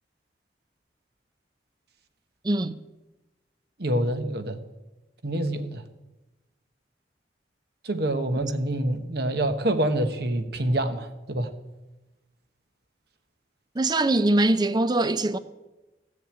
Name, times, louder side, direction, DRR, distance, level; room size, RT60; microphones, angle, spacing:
voice 1, 2.4-2.8 13.7-15.4, right 2 dB, 25° right, 0.5 m, -22 dB
voice 2, 3.8-4.6 5.2-5.8 7.8-11.5, right 1 dB, 60° right, 1.2 m, -26 dB
15.5 x 6.6 x 8.8 m
head